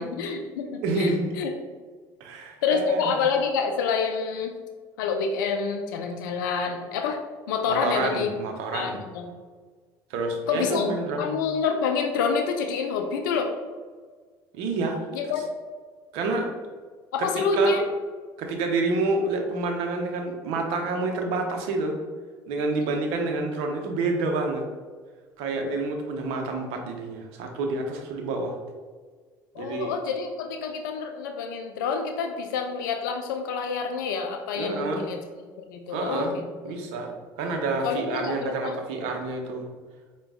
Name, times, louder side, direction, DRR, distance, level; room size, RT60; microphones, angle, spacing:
voice 1, 0.0-1.5 2.6-4.5 5.0-7.2 7.5-8.3 8.7-9.3 10.5-10.9 11.2-13.5 15.1-15.4 17.1-17.8 22.8-22.9 29.5-35.2 35.7-36.9 37.8-38.8, left 5 dB, 90° left, 4 dB, 0.4 m, -27 dB
voice 2, 0.8-1.3 2.2-3.0 7.7-9.0 10.1-11.3 14.5-15.0 16.1-16.5 17.2-17.8 18.4-22.0 22.5-24.6 25.4-28.6 29.6-29.9 34.6-35.0 35.9-36.3 36.6-39.6, right 3 dB, 75° right, 3 dB, 0.7 m, -28 dB
4.9 x 2.3 x 3.5 m, 1.5 s
hypercardioid pair, 75°, 10 cm